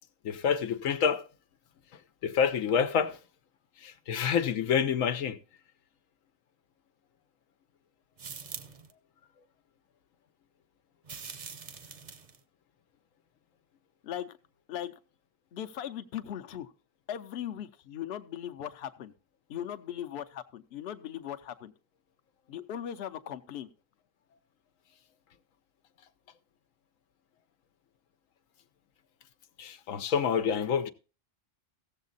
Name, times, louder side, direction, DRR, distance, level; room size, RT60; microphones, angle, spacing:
voice 1, 0.2-1.2 2.2-3.2 3.8-5.4 29.6-30.9, left 7 dB, 90° left, 1.1 m, -27 dB
sound 1, 8.2-8.9 11.0-12.4, right 5 dB, 40° right, 0.7 m, -43 dB
voice 2, 14.0-14.4 14.7-14.9 15.5-16.7 17.1-19.1 19.5-21.7 22.5-23.7, left 10 dB, 60° left, 0.9 m, -38 dB
15.5 x 7.3 x 4.0 m
omnidirectional pair, 1.3 m